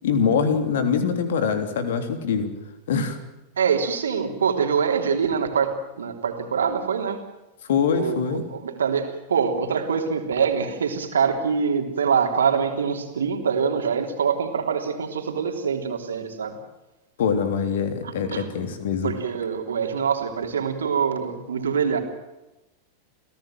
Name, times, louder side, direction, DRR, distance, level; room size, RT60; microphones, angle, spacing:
voice 1, 0.0-2.6 2.9-3.2 7.7-8.5 17.2-19.2, left 6 dB, 60° left, 8 dB, 3.3 m, -24 dB
voice 2, 3.6-5.7 6.0-7.2 8.0-16.6 18.0-18.5 19.0-22.0, right 6 dB, 70° right, 4 dB, 3.3 m, -24 dB
28.5 x 16.5 x 7.7 m, 0.99 s
figure-of-eight pair, 90°, 0 cm